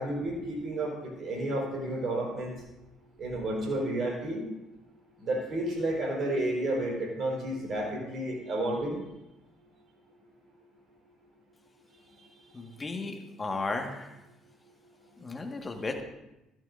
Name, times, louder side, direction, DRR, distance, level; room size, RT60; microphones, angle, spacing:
voice 1, 0.0-2.6 3.2-4.5 5.2-9.0, right 1 dB, 45° right, -1 dB, 4.4 m, -31 dB
voice 2, 12.5-14.1 15.2-16.0, left 3 dB, 25° left, 3 dB, 1.7 m, -35 dB
14.5 x 12.5 x 2.6 m, 0.94 s
figure-of-eight pair, 55°, 0 cm